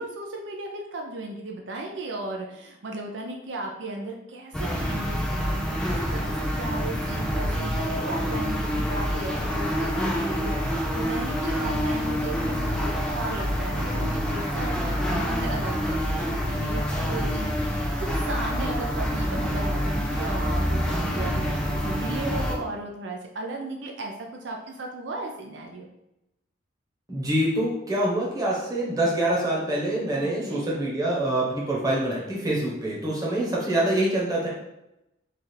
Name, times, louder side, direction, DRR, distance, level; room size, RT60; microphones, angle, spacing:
voice 1, 0.0-25.9 30.2-30.7, right 2 dB, 70° right, 1 dB, 0.5 m, -36 dB
sound 1, 4.5-22.6, equal, 5° left, 0.4 m, -27 dB
voice 2, 27.1-34.5, right 1 dB, 20° right, -5 dB, 1.0 m, -25 dB
3.3 x 2.4 x 4.3 m, 0.90 s
head